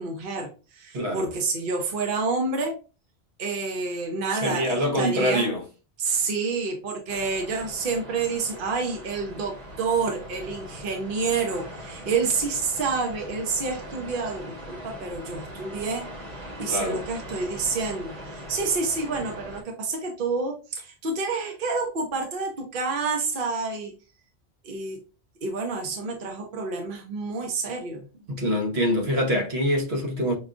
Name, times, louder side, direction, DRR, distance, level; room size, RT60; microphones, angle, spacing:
voice 1, 0.0-2.7 3.4-5.5 6.0-16.0 16.6-23.9 24.6-25.0 25.4-28.0, right 4 dB, 60° right, 0.9 m, -28 dB
voice 2, 0.9-1.3 4.4-5.6 16.7-17.0 28.3-30.3, equal, 75° right, 1.3 m, -25 dB
sound 1, 7.1-19.6, equal, 40° right, 1.2 m, -41 dB
5.9 x 2.3 x 2.5 m
omnidirectional pair, 1.1 m